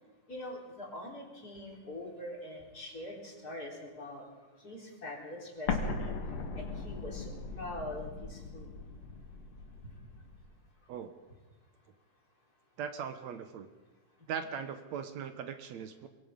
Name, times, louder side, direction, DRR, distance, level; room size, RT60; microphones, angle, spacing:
voice 1, 0.3-4.2 4.6-6.1 6.6-8.7, left 1 dB, 30° left, -1 dB, 4.2 m, -43 dB
Explosion, 5.7-10.4, left 4 dB, 60° left, 2.8 m, -38 dB
voice 2, 12.8-13.7 14.3-16.1, right 7 dB, 70° right, 8 dB, 2.3 m, -39 dB
24.0 x 21.5 x 5.3 m, 1.2 s
omnidirectional pair, 3.3 m